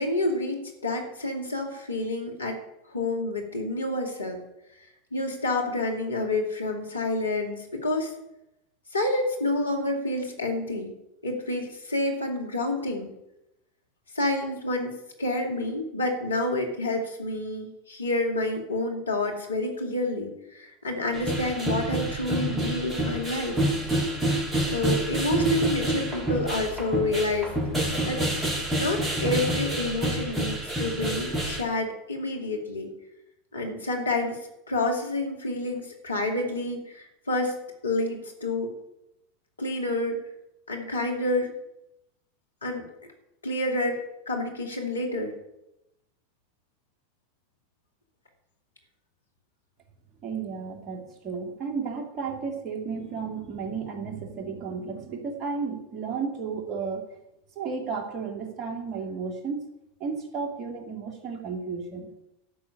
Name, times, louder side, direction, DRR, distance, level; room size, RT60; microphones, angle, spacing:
voice 1, 0.0-2.6 2.9-4.4 5.1-8.1 8.9-10.9 11.2-13.1 14.1-23.6 24.7-27.6 28.1-28.3 28.8-32.9 33.5-34.4 34.7-37.6 37.8-38.7 39.6-40.2 40.7-41.5 42.6-42.9 43.4-45.3, left 2 dB, 85° left, 3 dB, 2.2 m, -28 dB
sound 1, 21.1-31.6, right 1 dB, 15° right, 4.3 m, -28 dB
voice 2, 50.2-57.2 57.6-59.7 60.0-62.1, right 5 dB, 40° right, 2 dB, 2.7 m, -33 dB
12.5 x 6.1 x 8.3 m, 0.87 s
figure-of-eight pair, 85°, 0 cm